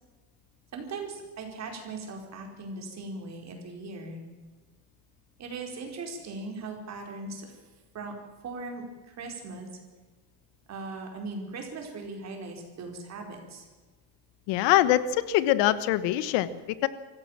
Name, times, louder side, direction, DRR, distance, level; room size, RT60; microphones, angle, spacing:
voice 1, 0.7-4.2 5.4-7.6 7.9-8.1 8.4-9.8 10.7-13.7, right 3 dB, 40° right, 2 dB, 4.8 m, -39 dB
voice 2, 14.5-16.9, left 13 dB, 85° left, 15 dB, 1.3 m, -24 dB
24.5 x 15.0 x 7.4 m, 1.3 s
cardioid pair, 160°, 42 cm